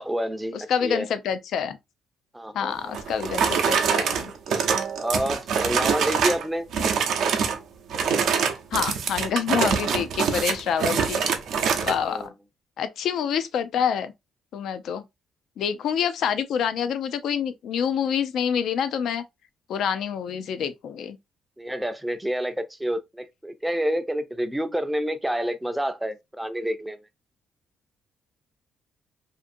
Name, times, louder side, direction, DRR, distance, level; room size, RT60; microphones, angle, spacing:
voice 1, 0.0-1.1 2.3-2.9 4.5-4.7 5.0-6.7 12.0-12.3 21.6-27.0, equal, 5° right, 0.4 m, -28 dB
voice 2, 0.7-1.8 2.5-4.3 8.7-11.2 11.8-12.3 12.8-14.1 14.5-15.0 15.6-19.2 19.7-21.2, left 8 dB, 75° left, 0.4 m, -27 dB
sound 1, 2.9-6.4 6.7-7.6 7.9-12.0, right 6 dB, 75° right, 0.5 m, -24 dB
2.6 x 2.5 x 2.5 m
cardioid pair, 90°, 0 cm